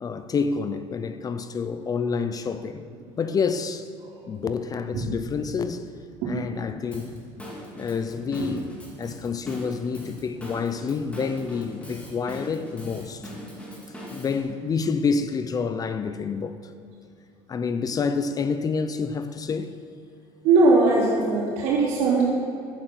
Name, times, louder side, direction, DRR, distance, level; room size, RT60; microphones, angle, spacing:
voice 1, 0.0-2.8 3.2-3.9 4.3-5.8 6.3-7.1 7.8-8.7 9.0-13.3 14.1-16.6 17.5-19.7, left 5 dB, 30° left, 0.6 m, -28 dB
Drum kit / Drum, 6.9-14.4, equal, 10° left, 2.7 m, -41 dB
voice 2, 20.4-22.2, right 3 dB, 75° right, 3.5 m, -20 dB
12.0 x 9.0 x 6.1 m
cardioid pair, 125°, 13 cm